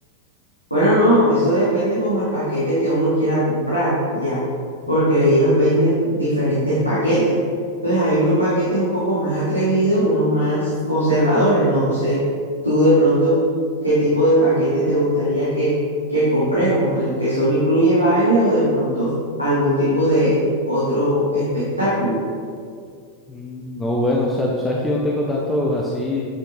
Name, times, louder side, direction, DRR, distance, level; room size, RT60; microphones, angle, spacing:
voice 1, 0.7-4.4 4.9-7.3 7.8-12.2 12.6-13.4 13.8-15.7 16.1-19.1 19.4-20.3 20.7-22.2, equal, 90° left, -11 dB, 1.8 m, -18 dB
voice 2, 23.3-26.3, left 1 dB, 10° left, -2 dB, 0.8 m, -22 dB
8.4 x 5.7 x 3.3 m, 2.3 s
figure-of-eight pair, 90°, 0 cm